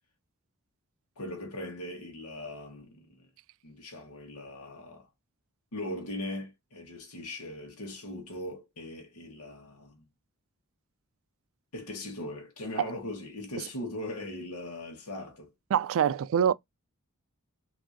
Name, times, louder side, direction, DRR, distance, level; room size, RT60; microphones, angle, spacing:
voice 1, 1.2-3.3 3.6-5.1 5.7-10.0 11.7-15.5, left 1 dB, 90° left, 1.2 m, -39 dB
voice 2, 15.7-16.5, right 8 dB, 65° right, 0.3 m, -24 dB
6.0 x 2.6 x 2.5 m
head